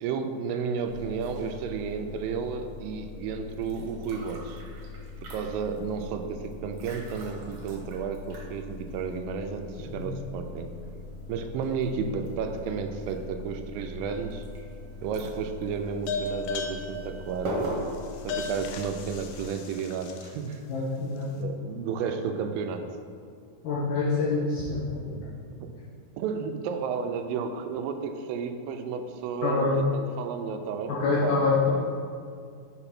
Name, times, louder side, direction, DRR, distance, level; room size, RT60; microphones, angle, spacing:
voice 1, 0.0-4.6 5.2-10.7 11.3-14.4 15.0-17.6 18.2-20.6 21.4-22.9 25.6-25.7 26.2-30.9 31.2-31.4, right 6 dB, 80° right, 6 dB, 2.2 m, -32 dB
sound 1, 0.9-19.4, left 1 dB, 60° right, 1.5 m, -40 dB
sound 2, 14.1-14.7 16.1-20.5, left 4 dB, 90° left, 1.8 m, -36 dB
voice 2, 20.7-21.3 23.6-25.2 29.4-29.7 30.9-31.7, left 3 dB, 65° left, -8 dB, 2.5 m, -26 dB
6.7 x 3.9 x 5.9 m, 2.3 s
omnidirectional pair, 4.3 m